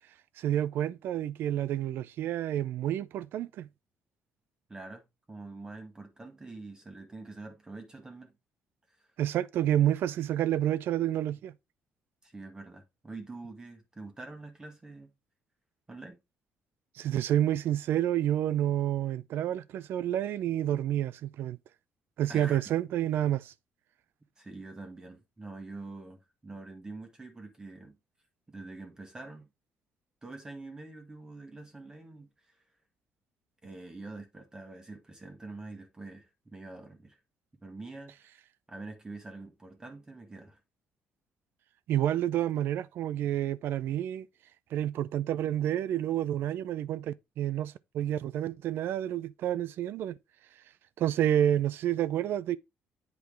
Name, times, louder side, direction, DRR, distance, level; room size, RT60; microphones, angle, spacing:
voice 1, 0.4-3.7 9.2-11.5 17.0-21.6 22.2-23.5 41.9-44.3 44.7-50.2 51.0-52.6, right 11 dB, 70° right, 0.5 m, -29 dB
voice 2, 4.7-8.3 9.0-9.1 12.2-15.1 15.9-16.2 22.3-22.6 24.4-28.0 28.5-29.5 30.2-32.6 33.6-37.2 37.6-38.3 38.7-40.6, right 3 dB, 15° right, 1.3 m, -45 dB
8.3 x 4.7 x 3.4 m
cardioid pair, 120°, 4 cm